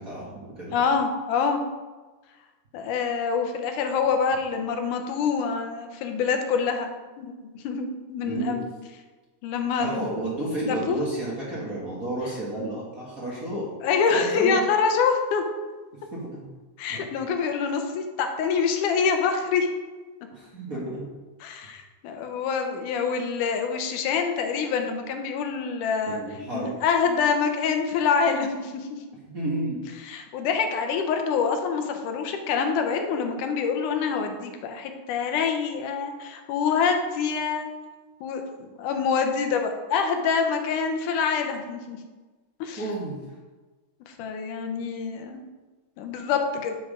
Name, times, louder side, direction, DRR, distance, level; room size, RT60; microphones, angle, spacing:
voice 1, 0.0-0.7 8.2-8.6 9.8-13.7 14.1-14.6 16.1-16.4 16.9-17.0 20.3-21.1 26.1-26.7 29.3-29.8 42.8-43.2, right 1 dB, 40° right, -5 dB, 1.4 m, -31 dB
voice 2, 0.7-1.6 2.7-6.9 7.2-8.6 9.4-10.2 10.7-11.0 13.8-15.4 16.8-19.7 21.4-26.2 26.5-28.9 30.0-37.7 38.2-42.0 42.6-42.8 44.1-45.4 46.0-46.8, left 6 dB, 80° left, 5 dB, 2.4 m, -26 dB
7.2 x 6.8 x 4.9 m, 1.3 s
omnidirectional pair, 3.6 m